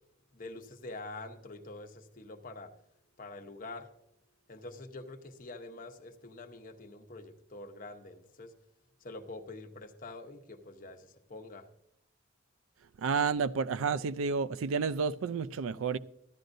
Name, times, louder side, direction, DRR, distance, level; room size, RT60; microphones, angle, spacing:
voice 1, 0.3-2.7 3.2-3.9 4.5-8.5 9.0-11.7, left 2 dB, 45° left, 0.9 m, -46 dB
voice 2, 13.0-16.0, right 5 dB, 80° right, 0.4 m, -30 dB
14.5 x 11.5 x 2.6 m
head